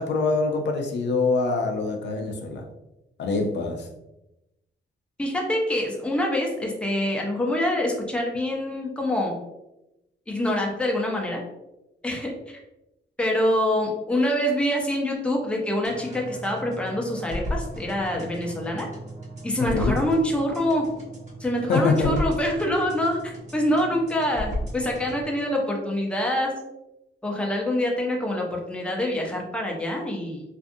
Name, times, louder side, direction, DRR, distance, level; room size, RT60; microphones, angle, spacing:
voice 1, 0.0-2.6 3.2-3.9 19.6-20.0 21.7-22.2, left 3 dB, 70° left, 3 dB, 0.4 m, -24 dB
voice 2, 5.2-9.3 10.3-11.4 12.0-12.6 13.2-18.9 19.4-20.8 21.4-26.5 27.2-30.4, left 1 dB, 5° left, -1 dB, 0.6 m, -25 dB
sound 1, 15.8-25.2, equal, 40° right, 1.2 m, -35 dB
2.5 x 2.5 x 2.5 m, 0.93 s
cardioid pair, 100°, 19 cm